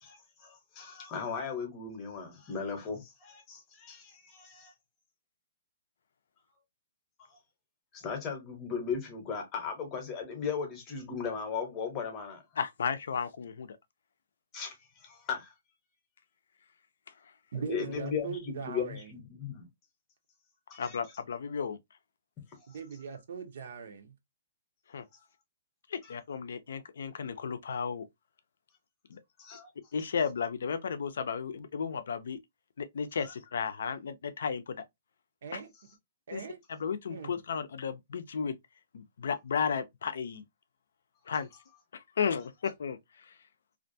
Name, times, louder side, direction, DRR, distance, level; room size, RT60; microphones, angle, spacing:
voice 1, 0.0-4.7 7.9-12.4 14.5-15.5 17.7-19.7 20.7-21.0 29.4-29.7, left 6 dB, 20° left, 0.8 m, -37 dB
voice 2, 12.6-13.8 17.2-17.3 20.8-21.8 24.9-25.1 25.9-28.1 29.1-29.2 29.9-32.4 32.8-34.8 35.5-35.6 36.3-36.4 36.7-38.6 38.9-40.4 41.3-41.5 41.9-43.4, left 6 dB, 75° left, 0.4 m, -34 dB
voice 3, 17.5-19.1 22.7-24.1 35.4-35.7 36.3-36.6 37.1-37.4, right 6 dB, 60° right, 0.7 m, -40 dB
2.4 x 2.2 x 2.6 m
hypercardioid pair, 165°, 0 cm